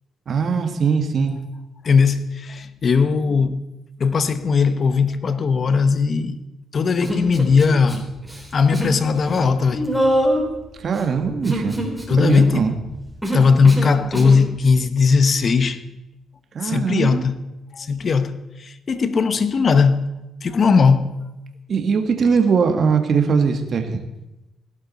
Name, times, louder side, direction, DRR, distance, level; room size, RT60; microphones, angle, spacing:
voice 1, 0.3-1.4 10.8-11.8 12.2-12.7 16.5-17.2 21.7-24.0, right 5 dB, 50° right, 1.6 m, -20 dB
voice 2, 1.8-3.6 4.0-6.4 6.7-8.1 8.5-9.9 12.1-12.6 13.3-15.8 16.6-17.4 17.7-20.1 20.4-21.1, left 5 dB, 45° left, 0.9 m, -18 dB
Human voice, 7.0-8.0 8.2-9.0 9.2-14.4, equal, ahead, 3.5 m, -24 dB
17.5 x 11.5 x 4.2 m
cardioid pair, 90°, 0 cm